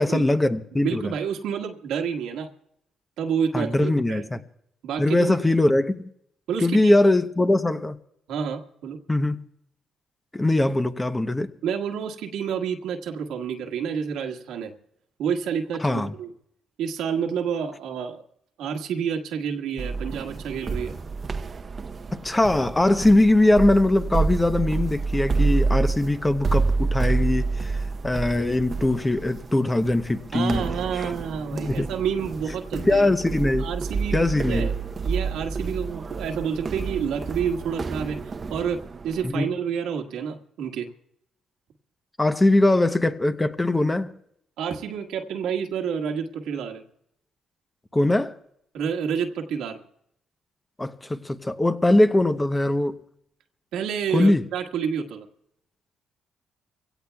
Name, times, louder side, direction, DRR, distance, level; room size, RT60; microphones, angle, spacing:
voice 1, 0.0-1.1 3.5-4.4 5.0-6.0 6.6-8.0 9.1-9.4 10.3-11.5 15.8-16.1 22.1-27.8 28.0-30.6 30.9-31.1 31.5-31.9 32.7-33.7 34.1-34.7 39.2-39.5 42.2-44.1 47.9-48.4 50.8-53.0 54.1-54.5, left 2 dB, 15° left, 0.8 m, -21 dB
voice 2, 0.7-2.5 3.2-4.2 4.8-5.5 6.5-6.9 8.3-9.0 11.6-14.7 15.2-16.3 16.8-18.2 18.6-21.0 30.3-33.1 33.6-34.7 35.0-40.9 44.6-46.8 48.7-49.8 53.7-55.3, right 7 dB, 85° right, 1.6 m, -29 dB
sound 1, 19.8-39.3, right 4 dB, 40° right, 0.8 m, -28 dB
25.0 x 17.0 x 2.3 m
cardioid pair, 90°, 0 cm